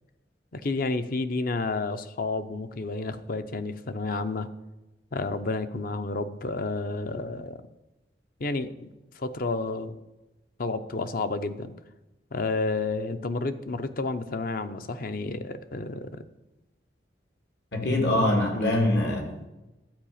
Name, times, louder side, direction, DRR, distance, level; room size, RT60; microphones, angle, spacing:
voice 1, 0.5-4.5 5.1-7.6 8.4-10.0 10.6-11.7 12.3-16.2 18.5-18.7, left 3 dB, 55° left, 11 dB, 0.7 m, -31 dB
voice 2, 17.7-19.5, left 1 dB, 75° left, 2 dB, 2.3 m, -24 dB
12.0 x 4.9 x 8.6 m, 1.0 s
head